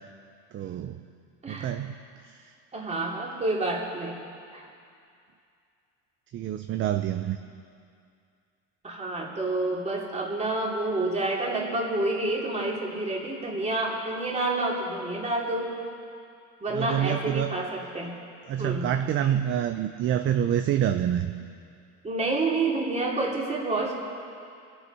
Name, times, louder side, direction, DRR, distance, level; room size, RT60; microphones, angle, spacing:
voice 1, 0.5-1.0 1.5-2.5 6.3-7.4 16.7-17.5 18.5-21.3, right 10 dB, 35° right, 8 dB, 0.5 m, -27 dB
voice 2, 2.7-4.1 4.5-4.7 8.8-15.8 16.6-18.1 18.6-18.9 22.0-23.9, right 2 dB, 20° right, -2 dB, 2.8 m, -28 dB
24.5 x 8.2 x 5.5 m, 2.4 s
supercardioid pair, 125°, 37 cm